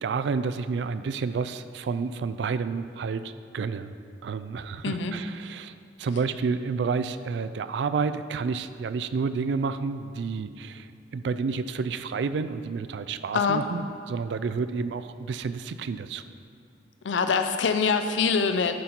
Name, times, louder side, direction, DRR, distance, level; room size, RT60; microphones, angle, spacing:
voice 1, 0.0-3.9 4.2-16.2, right 5 dB, 70° right, 12 dB, 0.3 m, -30 dB
voice 2, 4.8-5.2 13.3-13.6 17.0-18.7, left 5 dB, 80° left, 7 dB, 0.5 m, -24 dB
11.5 x 3.9 x 4.3 m, 2.4 s
head